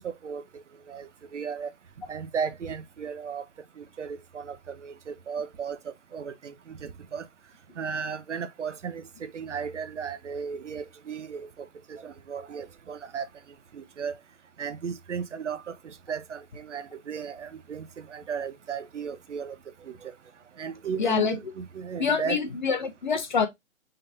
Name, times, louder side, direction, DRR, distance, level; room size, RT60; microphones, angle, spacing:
voice 1, 0.0-1.7 2.1-3.4 3.8-7.3 7.8-13.3 13.7-14.2 14.6-19.6 19.8-20.1 20.6-22.4, right 6 dB, 60° right, 0.7 m, -35 dB
voice 2, 21.0-21.3 22.0-23.5, left 6 dB, 35° left, 0.7 m, -25 dB
3.8 x 3.4 x 2.6 m
figure-of-eight pair, 145°, 40 cm